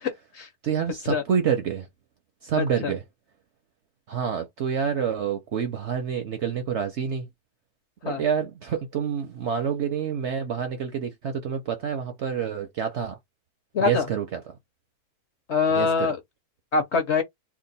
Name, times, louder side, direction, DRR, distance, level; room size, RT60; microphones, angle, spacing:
voice 1, 0.0-0.5 1.1-1.2 2.6-2.9 8.0-8.2 13.7-14.1 15.5-16.2 16.7-17.2, left 5 dB, 55° left, 0.9 m, -24 dB
voice 2, 0.6-1.9 2.4-3.0 4.1-7.3 8.0-13.2 13.8-14.4 15.7-16.1, right 7 dB, 60° right, 0.8 m, -27 dB
2.8 x 2.4 x 4.0 m
omnidirectional pair, 1.7 m